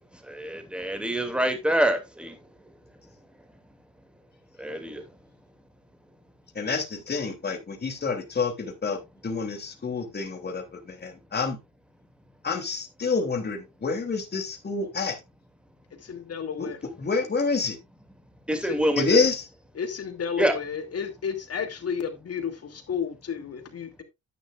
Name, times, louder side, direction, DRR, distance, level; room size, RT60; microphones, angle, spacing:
voice 1, 0.3-2.4 4.6-5.0 18.5-19.2 20.4-20.5, right 1 dB, 5° right, 2.5 m, -26 dB
voice 2, 6.5-9.0 9.2-11.6 12.4-15.2 16.6-16.7 17.0-17.8 19.0-19.4, left 4 dB, 35° left, 2.9 m, -27 dB
voice 3, 16.0-16.8 18.6-18.7 19.7-24.0, left 7 dB, 50° left, 2.7 m, -32 dB
11.0 x 9.4 x 2.5 m
cardioid pair, 90°, 31 cm